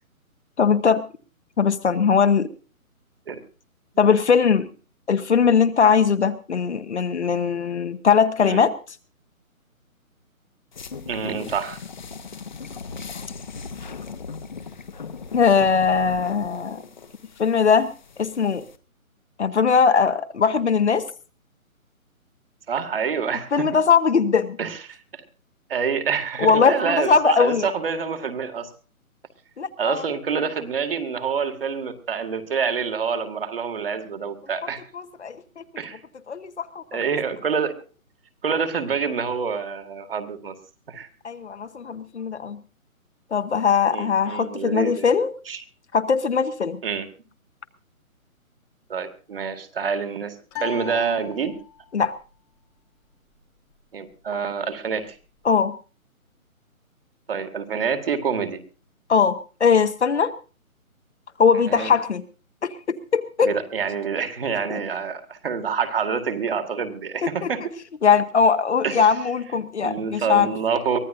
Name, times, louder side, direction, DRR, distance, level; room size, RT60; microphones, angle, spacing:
voice 1, 0.6-1.0 1.6-2.5 4.0-4.7 5.1-8.7 15.3-16.8 17.4-17.9 18.2-18.6 19.4-21.0 23.5-24.6 26.4-27.7 29.6-30.0 34.9-35.6 36.3-36.8 41.2-42.6 43.3-45.3 45.9-46.8 51.9-52.1 55.4-55.7 59.1-60.3 61.4-62.2 62.6-63.5 64.7-64.8 67.4-67.5 68.0-70.5, left 6 dB, 50° left, 10 dB, 1.2 m, -20 dB
sound 1, 10.7-18.8, left 5 dB, 35° left, 1.0 m, -38 dB
voice 2, 11.1-11.8 22.7-23.7 24.6-25.2 25.7-28.7 29.8-34.8 35.8-36.0 36.9-37.7 38.4-40.5 40.9-41.1 43.9-45.1 45.5-45.6 46.8-47.1 48.9-51.6 53.9-55.2 57.3-58.6 61.7-61.9 63.4-67.6 68.8-69.1 69.8-71.0, right 6 dB, 40° right, 8 dB, 2.1 m, -27 dB
sound 2, 50.5-52.0, left 11 dB, 5° left, 1.3 m, -37 dB
23.5 x 15.5 x 2.6 m, 0.36 s
hypercardioid pair, 170°, 42 cm